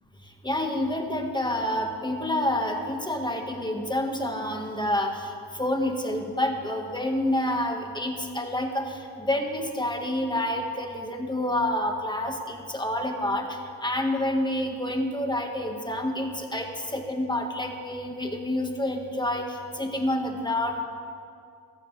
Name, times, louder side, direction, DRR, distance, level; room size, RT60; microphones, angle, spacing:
voice 1, 0.4-20.8, left 1 dB, 10° left, 3 dB, 1.6 m, -28 dB
14.5 x 13.5 x 3.4 m, 2.3 s
cardioid pair, 65°, 42 cm